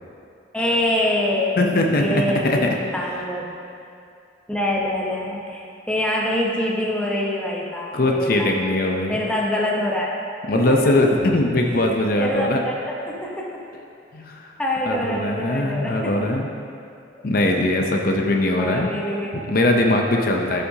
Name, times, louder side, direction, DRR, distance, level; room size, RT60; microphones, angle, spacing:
voice 1, 0.5-1.6 2.0-3.5 4.5-8.5 9.1-10.2 10.5-10.9 12.2-13.6 14.6-16.3 17.1-17.2 18.6-19.4, left 1 dB, 5° left, -3 dB, 0.8 m, -25 dB
voice 2, 1.6-2.7 7.9-9.2 10.5-12.6 14.1-14.5 14.9-16.5 17.2-18.9 19.5-20.6, left 1 dB, 50° left, 2 dB, 0.6 m, -20 dB
13.0 x 5.8 x 2.7 m, 2.5 s
head